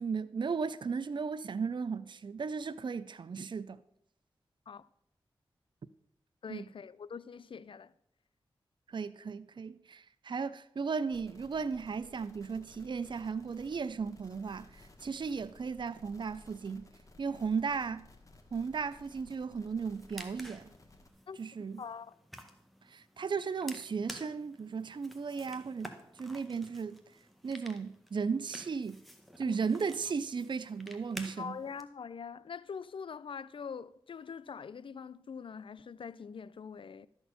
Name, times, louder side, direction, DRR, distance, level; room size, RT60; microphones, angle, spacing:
voice 1, 0.0-3.8 6.5-6.7 8.9-16.9 17.2-18.1 18.5-20.7 21.4-21.8 22.8-27.0 27.4-29.0 29.4-31.6, right 5 dB, 55° right, 0.5 m, -36 dB
voice 2, 6.4-7.9 21.3-21.4 21.8-22.2 29.5-29.6 31.4-37.1, left 6 dB, 65° left, 0.4 m, -43 dB
sound 1, 11.1-21.1, left 2 dB, 35° left, 1.6 m, -58 dB
sound 2, 19.8-31.8, equal, ahead, 1.5 m, -51 dB
12.5 x 4.4 x 6.9 m
cardioid pair, 40°, 10 cm